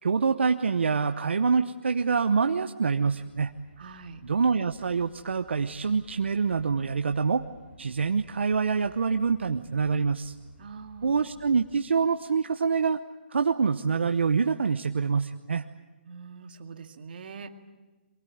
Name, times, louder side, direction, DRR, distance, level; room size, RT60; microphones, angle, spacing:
voice 1, 0.0-3.5 4.2-7.4 7.8-10.3 11.0-13.0 13.3-15.6, right 5 dB, 80° right, 8 dB, 0.9 m, -25 dB
sound 1, 3.1-11.8, left 2 dB, 65° left, 6.8 m, -54 dB
voice 2, 3.8-4.2 10.6-11.2 16.1-17.5, right 5 dB, 55° right, 6 dB, 2.2 m, -43 dB
23.5 x 21.0 x 9.4 m, 1.2 s
hypercardioid pair, 150°, 6 cm